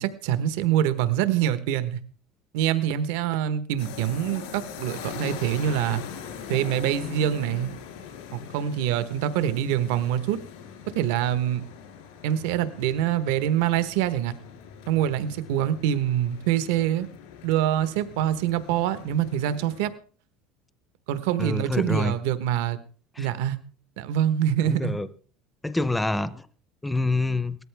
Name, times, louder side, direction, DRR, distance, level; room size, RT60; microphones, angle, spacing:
voice 1, 0.0-2.0 2.5-6.0 6.5-7.7 8.3-10.4 10.9-11.6 12.2-14.3 14.9-17.1 17.4-19.9 21.1-22.8 23.2-23.6 24.0-25.0, right 11 dB, 75° right, 13 dB, 1.0 m, -25 dB
sound 1, 3.8-19.9, left 7 dB, 85° left, 3.2 m, -42 dB
voice 2, 21.4-22.2 23.1-23.3 24.6-25.1 25.6-26.5 26.8-27.6, left 2 dB, 5° left, 15 dB, 0.5 m, -26 dB
18.0 x 13.5 x 3.4 m, 0.40 s
cardioid pair, 175°, 0 cm